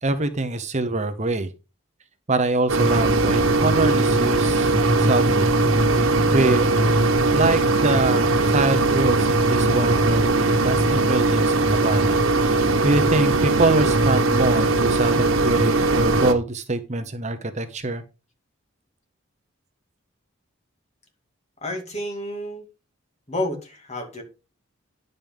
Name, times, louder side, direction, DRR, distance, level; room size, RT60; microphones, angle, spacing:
voice 1, 0.0-1.5 2.3-5.5 5.9-6.8 7.3-18.0, right 2 dB, 35° right, 8 dB, 0.9 m, -24 dB
sound 1, 2.7-16.3, right 2 dB, 85° right, 1.5 m, -19 dB
voice 2, 21.6-22.7 23.3-24.2, left 1 dB, 30° left, 3 dB, 2.6 m, -30 dB
10.5 x 5.4 x 5.2 m, 0.30 s
head